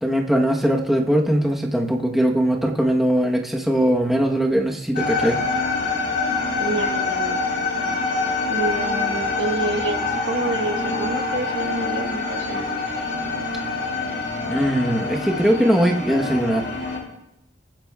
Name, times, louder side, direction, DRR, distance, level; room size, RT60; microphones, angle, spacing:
voice 1, 0.0-5.4 14.4-16.7, equal, ahead, -1 dB, 1.0 m, -20 dB
sound 1, 4.9-17.0, left 3 dB, 70° left, 3.4 m, -25 dB
voice 2, 6.6-7.4 8.5-12.8, right 3 dB, 80° right, 5 dB, 1.4 m, -28 dB
23.0 x 10.5 x 2.3 m, 0.84 s
head